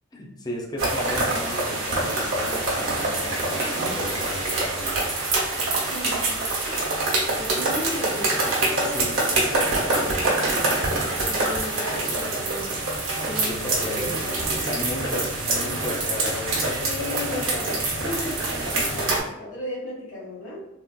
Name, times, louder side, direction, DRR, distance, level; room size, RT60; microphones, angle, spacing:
voice 1, 0.1-5.2 8.8-9.2 12.1-12.4 13.5-14.2 14.6-16.8 18.6-19.1, left 1 dB, 20° left, 0 dB, 0.5 m, -35 dB
sound 1, 0.8-19.2, right 2 dB, 70° right, 1.0 m, -25 dB
voice 2, 5.8-6.3 7.3-12.8 13.2-14.7 16.8-20.7, left 1 dB, 65° left, -8 dB, 1.5 m, -35 dB
3.6 x 2.3 x 2.3 m, 0.92 s
head